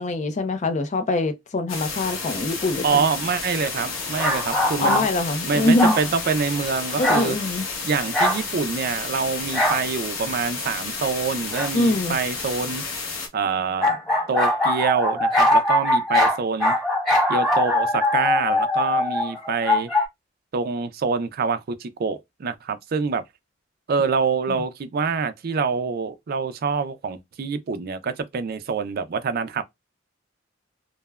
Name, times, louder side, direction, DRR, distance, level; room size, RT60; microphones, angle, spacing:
voice 1, 0.0-3.1 4.8-5.9 7.0-7.7 11.7-12.2, left 2 dB, 40° left, 0.5 m, -23 dB
sound 1, 1.7-13.3, left 4 dB, 85° left, 0.8 m, -31 dB
voice 2, 2.8-5.1 5.5-7.4 7.8-12.8 13.3-14.0 14.3-16.7 17.3-19.9 20.5-23.2 23.9-29.6, right 5 dB, 50° right, 0.4 m, -26 dB
sound 2, 4.1-5.1 5.8-6.1 7.0-7.3 8.1-8.4 9.5-9.8 11.5-11.7 13.8-20.0, left 1 dB, ahead, 1.3 m, -21 dB
3.1 x 2.1 x 2.3 m
head